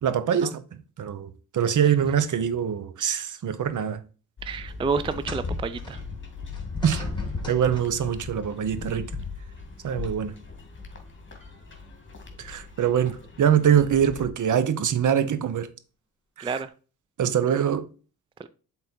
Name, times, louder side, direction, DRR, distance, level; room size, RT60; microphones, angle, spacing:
voice 1, 0.0-4.0 6.8-7.0 7.5-9.1 9.8-10.3 12.4-15.7 16.4-16.6 17.2-17.9, right 8 dB, 55° right, 0.9 m, -24 dB
sound 1, 4.4-14.3, left 4 dB, 30° left, 2.1 m, -37 dB
voice 2, 4.4-6.0 16.4-16.7 18.4-18.5, right 5 dB, 15° right, 0.4 m, -29 dB
sound 2, 5.1-8.2 9.1-9.3 10.2-10.3, equal, 10° left, 3.0 m, -44 dB
7.6 x 3.9 x 4.4 m
cardioid pair, 75°, 37 cm